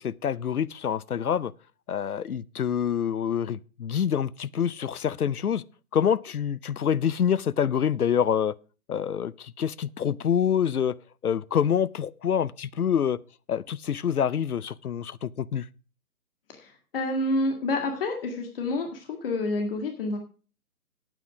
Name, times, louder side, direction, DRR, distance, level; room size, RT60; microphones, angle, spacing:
voice 1, 0.0-1.5 1.9-5.6 5.9-8.5 8.9-10.9 11.2-13.2 13.5-15.7, left 8 dB, 75° left, 0.7 m, -26 dB
voice 2, 16.5-20.2, left 2 dB, 40° left, 2.0 m, -28 dB
9.7 x 9.1 x 5.0 m
figure-of-eight pair, 145°, 45 cm